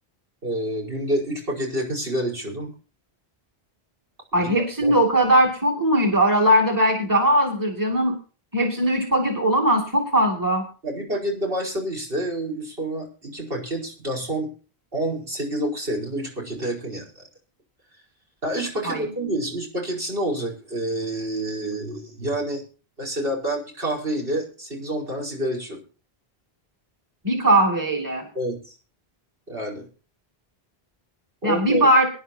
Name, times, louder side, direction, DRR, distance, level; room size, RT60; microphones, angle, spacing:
voice 1, 0.4-2.7 4.4-5.0 10.8-14.5 14.9-17.2 18.4-22.6 23.0-25.8 28.3-28.8 29.5-29.9 31.4-31.9, right 1 dB, 60° right, -2 dB, 5.2 m, -28 dB
voice 2, 4.3-8.1 8.5-10.6 18.9-19.3 27.2-28.3 31.4-32.1, right 1 dB, 20° right, 0 dB, 2.5 m, -20 dB
23.5 x 10.5 x 2.8 m, 0.35 s
omnidirectional pair, 1.1 m